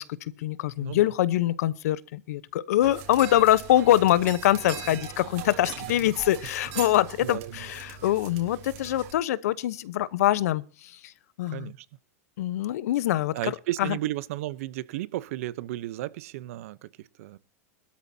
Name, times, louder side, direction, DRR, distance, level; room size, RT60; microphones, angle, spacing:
voice 1, 0.0-11.1 11.4-11.7 12.4-13.4 13.8-14.0, left 13 dB, 80° left, 0.9 m, -24 dB
voice 2, 0.8-1.1 7.2-7.6 11.5-11.9 13.3-17.4, right 15 dB, 65° right, 0.8 m, -34 dB
sound 1, 2.8-9.1, right 9 dB, 50° right, 3.5 m, -41 dB
21.0 x 13.0 x 2.8 m
supercardioid pair, 165°, 8 cm